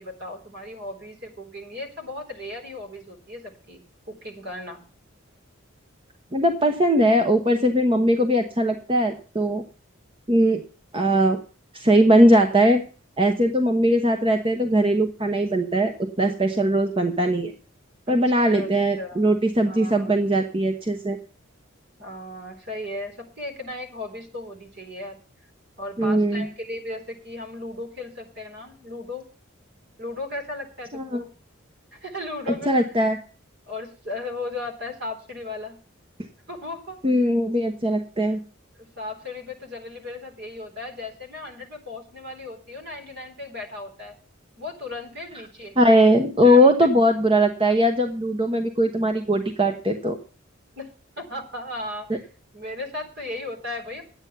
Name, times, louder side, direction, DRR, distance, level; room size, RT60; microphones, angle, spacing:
voice 1, 0.0-3.8 4.1-4.8 18.1-18.7 19.0-19.2 19.7-20.1 22.0-25.2 25.8-29.3 30.0-31.3 31.9-32.7 33.7-35.8 36.5-37.0 38.8-44.2 44.6-45.8 46.4-46.9 50.8-50.9 51.2-52.3 52.5-54.0, left 2 dB, 55° right, 3 dB, 3.8 m, -36 dB
voice 2, 6.3-9.6 10.3-10.6 10.9-11.4 11.7-12.8 13.2-17.5 18.1-21.2 26.0-26.5 30.9-31.2 32.7-33.2 37.0-38.4 45.8-50.2 52.1-52.2, equal, 25° right, 5 dB, 1.0 m, -20 dB
11.0 x 9.0 x 6.7 m, 0.38 s
head